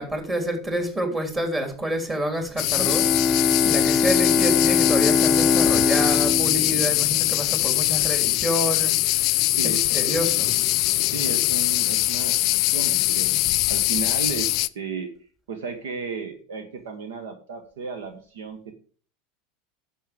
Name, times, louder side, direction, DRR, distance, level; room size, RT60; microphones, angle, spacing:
voice 1, 0.0-9.2 9.6-10.6, right 1 dB, 20° right, 4 dB, 3.3 m, -28 dB
sound 1, 2.6-14.7, left 19 dB, 50° left, 0.4 m, -22 dB
Bowed string instrument, 2.7-7.7, left 4 dB, 10° left, 0.7 m, -23 dB
voice 2, 11.1-13.3 13.7-15.1 15.5-18.7, right 5 dB, 65° right, 8 dB, 1.3 m, -34 dB
10.5 x 7.5 x 5.1 m, 0.42 s
figure-of-eight pair, 80°, 0 cm